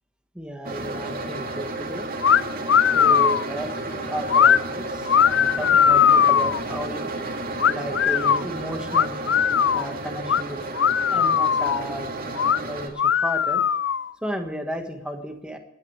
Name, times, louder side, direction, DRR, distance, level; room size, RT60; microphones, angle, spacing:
voice 1, 0.3-2.1 2.9-7.1 7.7-9.3 9.7-10.7 11.1-12.1 12.7-13.6 14.2-15.6, right 1 dB, 5° right, 4 dB, 1.3 m, -33 dB
sound 1, 0.6-12.9, right 2 dB, 40° right, 2.4 m, -32 dB
sound 2, 2.2-2.4 2.7-3.4 4.3-4.6 5.1-6.6 7.6-8.4 8.9-9.9 10.3-10.4 10.8-11.8 12.4-12.6 13.0-14.1, left 8 dB, 50° left, 0.4 m, -19 dB
28.5 x 9.6 x 3.3 m, 0.92 s
head